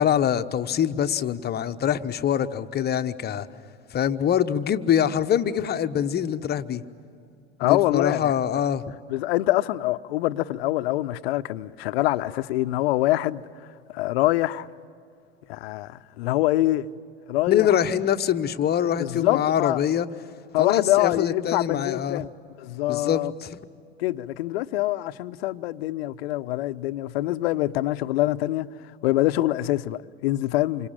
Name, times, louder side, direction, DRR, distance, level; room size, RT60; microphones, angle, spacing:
voice 1, 0.0-3.5 3.9-6.8 7.6-8.8 17.5-20.1 20.6-22.2 22.9-23.6, left 9 dB, 30° left, 1.1 m, -24 dB
voice 2, 7.6-8.3 9.1-13.4 13.9-14.7 15.5-16.9 17.3-17.7 19.0-19.8 20.5-22.3 22.6-23.3 24.0-28.7 29.0-30.9, left 16 dB, 65° left, 0.8 m, -25 dB
28.0 x 25.5 x 7.5 m
hypercardioid pair, 85°, 33 cm